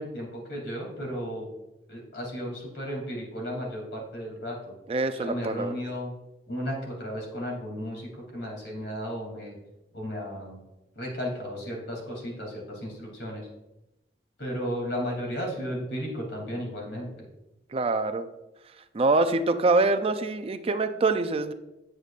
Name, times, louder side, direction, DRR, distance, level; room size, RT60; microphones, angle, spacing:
voice 1, 0.0-1.5 1.9-4.7 5.1-6.2 6.5-9.5 9.9-10.6 10.9-13.5 14.4-17.3, equal, 85° left, -1 dB, 2.8 m, -34 dB
voice 2, 4.9-5.7 17.7-18.3 18.9-21.5, right 3 dB, 35° right, 9 dB, 0.4 m, -24 dB
8.2 x 7.7 x 2.4 m, 0.97 s
head